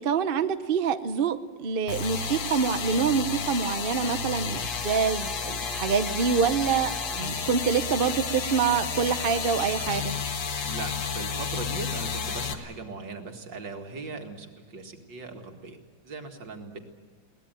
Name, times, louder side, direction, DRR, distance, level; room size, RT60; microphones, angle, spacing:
voice 1, 0.0-10.1, right 6 dB, 45° right, 10 dB, 0.7 m, -26 dB
sound 1, 1.9-12.5, left 5 dB, 75° left, 2.2 m, -31 dB
voice 2, 10.6-16.8, right 3 dB, 65° right, 4 dB, 2.7 m, -39 dB
22.5 x 19.0 x 9.2 m, 1.5 s
omnidirectional pair, 2.1 m